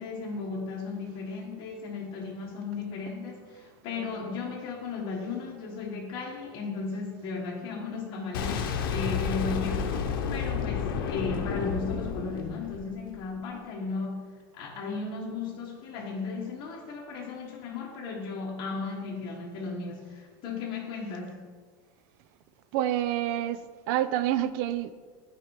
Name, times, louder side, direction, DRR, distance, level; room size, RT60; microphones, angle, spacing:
voice 1, 0.0-9.9 10.3-14.3 14.5-21.4, left 4 dB, 45° left, -4 dB, 1.5 m, -35 dB
Boom, 8.3-13.2, left 6 dB, 85° left, 0.9 m, -31 dB
voice 2, 22.7-23.6 23.9-24.9, right 12 dB, 60° right, 13 dB, 0.5 m, -27 dB
9.0 x 4.6 x 4.8 m, 1.5 s
supercardioid pair, 135°, 11 cm